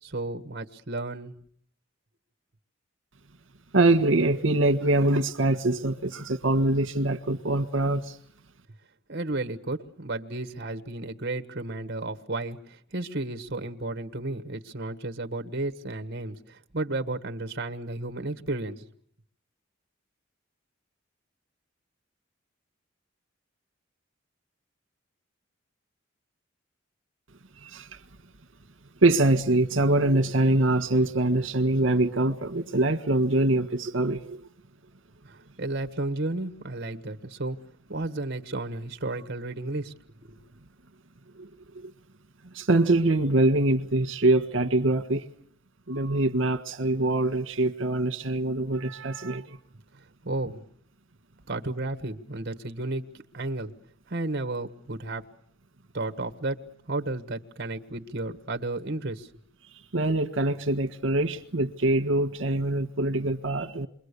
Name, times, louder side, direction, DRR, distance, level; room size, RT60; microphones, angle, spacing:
voice 1, 0.0-1.3 9.1-18.9 35.3-37.6 37.9-39.9 40.2-40.4 50.2-50.6 51.5-53.1 53.3-53.7 54.1-55.2 55.9-56.6 56.9-59.3, right 2 dB, 50° right, 1.4 m, -33 dB
voice 2, 3.7-8.2 27.6-27.9 29.0-34.4 41.4-41.5 41.8-41.9 42.5-45.3 45.9-49.6 59.7-63.9, right 2 dB, 75° right, 1.5 m, -24 dB
28.0 x 23.5 x 8.3 m
head